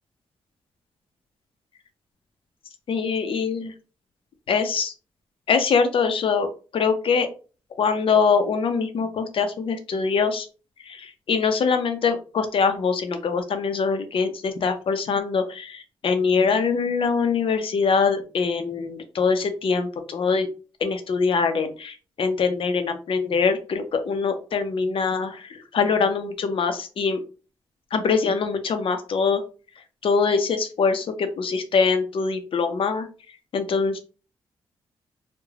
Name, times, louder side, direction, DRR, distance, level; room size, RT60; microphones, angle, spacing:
voice 1, 2.9-3.7 4.5-4.9 5.5-6.5 6.7-7.3 7.8-10.5 10.9-20.5 20.8-27.2 27.9-29.4 30.0-33.1 33.5-34.0, left 5 dB, 60° left, 7 dB, 0.6 m, -23 dB
3.1 x 2.1 x 2.4 m, 0.35 s
cardioid pair, 60°, 10 cm